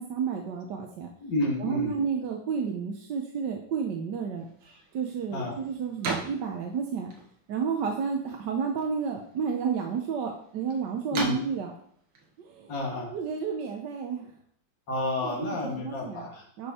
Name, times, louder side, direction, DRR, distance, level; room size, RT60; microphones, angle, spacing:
voice 1, 0.0-1.1 1.6-4.5 4.9-7.1 7.5-11.7 12.4-12.7 13.1-14.3 15.2-16.3 16.6-16.7, right 6 dB, 65° right, 3 dB, 1.4 m, -31 dB
voice 2, 1.2-2.0 5.3-5.5 11.1-11.4 12.7-13.1 14.9-16.4, left 1 dB, 65° left, -1 dB, 2.7 m, -30 dB
sound 1, 4.4-13.5, right 3 dB, 85° right, 2.5 m, -41 dB
11.0 x 5.2 x 4.3 m, 0.64 s
omnidirectional pair, 2.2 m